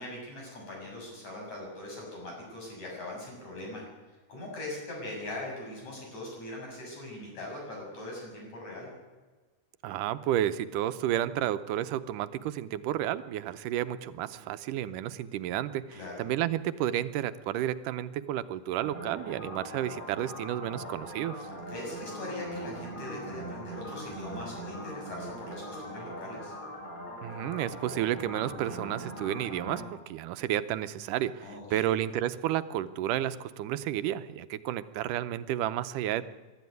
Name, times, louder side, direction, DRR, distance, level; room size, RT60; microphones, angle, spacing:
voice 1, 0.0-3.9 4.3-8.9 15.9-16.2 21.4-26.5 31.4-31.9, left 1 dB, 65° left, -1 dB, 8.7 m, -41 dB
voice 2, 9.8-21.4 27.2-36.2, right 12 dB, 85° right, 13 dB, 2.4 m, -31 dB
sound 1, 18.8-29.9, right 1 dB, 15° left, 8.0 m, -41 dB
23.0 x 13.0 x 9.5 m, 1.3 s
omnidirectional pair, 3.6 m